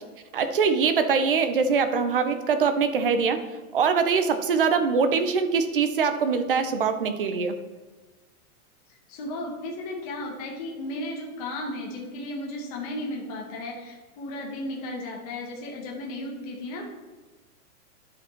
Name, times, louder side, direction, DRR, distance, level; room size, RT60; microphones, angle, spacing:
voice 1, 0.3-3.4 3.7-7.6, right 5 dB, 40° right, 9 dB, 0.6 m, -23 dB
voice 2, 9.1-16.9, left 1 dB, 25° left, -2 dB, 1.1 m, -34 dB
10.0 x 5.3 x 4.3 m, 1.2 s
supercardioid pair, 175°, 45 cm